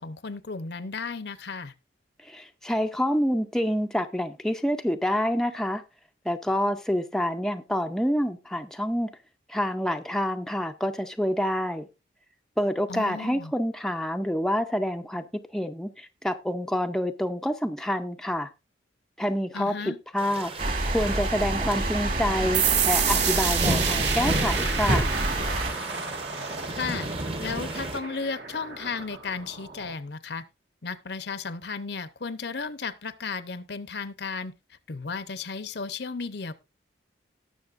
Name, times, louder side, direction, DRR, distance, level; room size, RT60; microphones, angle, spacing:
voice 1, 0.0-1.7 12.9-13.5 19.5-20.0 26.7-27.1 27.4-30.4 30.8-34.5 34.9-36.5, left 4 dB, 60° left, 0.8 m, -34 dB
voice 2, 2.2-5.8 6.3-9.2 9.5-11.9 12.6-18.5 19.2-20.5 20.9-25.1, equal, 5° left, 0.5 m, -27 dB
sound 1, 20.2-28.0, right 1 dB, 30° right, 1.0 m, -34 dB
sound 2, 20.6-25.7, right 2 dB, 50° right, 2.4 m, -27 dB
sound 3, 22.5-29.9, right 7 dB, 65° right, 1.8 m, -30 dB
18.5 x 6.5 x 2.5 m
head